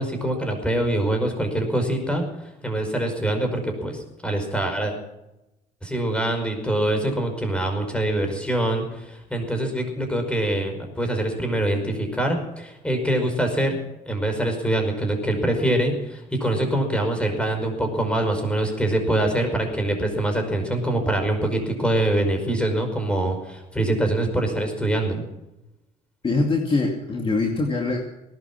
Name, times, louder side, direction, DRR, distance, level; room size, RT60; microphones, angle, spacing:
voice 1, 0.0-4.9 5.8-13.8 14.1-25.2, right 1 dB, 5° left, 5 dB, 5.2 m, -24 dB
voice 2, 26.2-28.0, left 3 dB, 30° left, 2 dB, 2.5 m, -23 dB
19.0 x 11.5 x 6.0 m, 0.95 s
cardioid pair, 110°, 17 cm